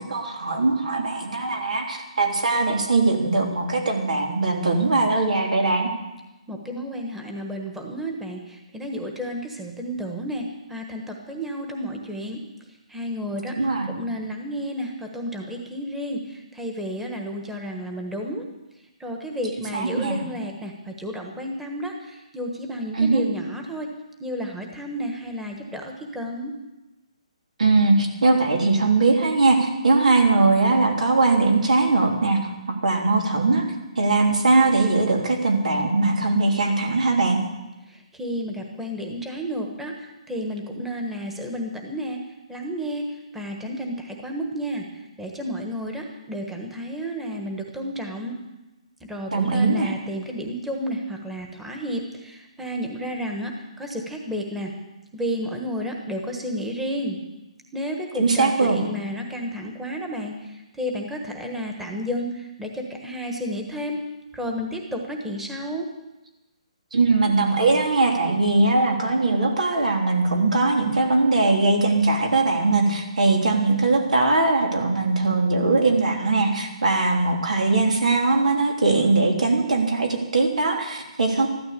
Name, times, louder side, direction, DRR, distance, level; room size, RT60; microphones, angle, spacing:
voice 1, 0.0-5.9 13.6-13.9 19.7-20.2 22.9-23.2 27.6-33.6 34.0-37.4 49.3-49.9 58.1-58.8 66.9-81.5, right 3 dB, 90° right, 2 dB, 3.3 m, -20 dB
voice 2, 6.5-10.4 10.7-12.4 12.9-13.6 13.9-18.4 19.0-23.9 24.2-26.5 37.9-42.2 42.5-43.1 43.3-44.8 45.2-48.3 49.0-53.5 53.8-54.7 55.1-57.2 57.7-64.0 64.3-65.9, equal, 5° right, 1 dB, 1.3 m, -31 dB
14.5 x 12.5 x 6.8 m, 1.0 s
hypercardioid pair, 160°, 4 cm